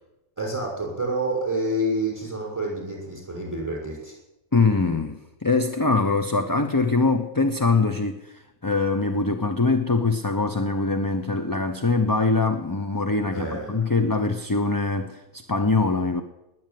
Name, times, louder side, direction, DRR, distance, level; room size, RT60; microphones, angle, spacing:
voice 1, 0.4-4.1 13.3-13.8, right 1 dB, 10° right, 6.2 m, -28 dB
voice 2, 4.5-16.2, left 3 dB, 20° left, 0.7 m, -23 dB
19.5 x 7.9 x 9.4 m
omnidirectional pair, 1.4 m